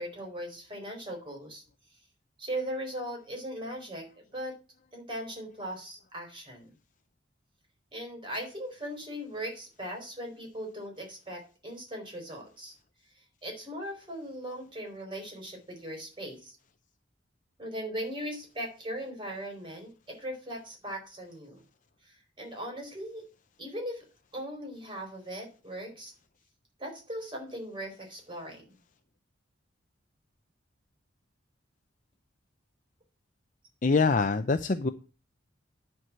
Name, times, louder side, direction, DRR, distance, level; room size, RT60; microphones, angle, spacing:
voice 1, 0.0-1.6 2.4-4.1 4.3-4.6 4.9-6.7 7.9-12.7 13.1-16.6 17.6-21.6 22.0-23.3 23.6-24.0 24.3-26.1 26.8-28.6, equal, 25° right, 2 dB, 4.4 m, -39 dB
voice 2, 33.8-34.9, left 4 dB, 40° left, 8 dB, 0.5 m, -24 dB
10.5 x 4.7 x 7.5 m, 0.34 s
head